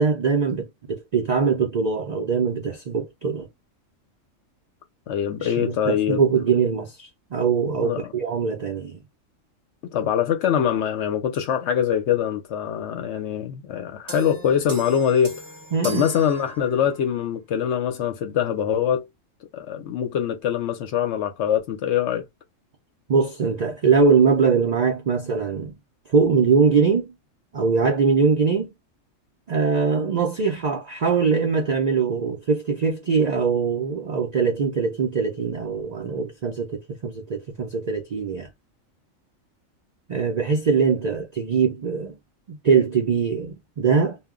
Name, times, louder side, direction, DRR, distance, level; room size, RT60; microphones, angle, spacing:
voice 1, 0.0-3.5 5.4-9.0 15.7-16.1 23.1-25.8 26.1-27.1 27.5-28.7 29.5-38.5 40.1-42.2 42.5-44.2, right 5 dB, 70° right, 0.4 m, -22 dB
voice 2, 5.1-6.2 7.8-8.1 9.9-15.4 15.8-19.0 19.5-22.2, left 9 dB, 65° left, 0.8 m, -23 dB
sound 1, 14.1-17.1, right 1 dB, 20° right, 0.7 m, -38 dB
2.2 x 2.1 x 3.6 m
omnidirectional pair, 1.4 m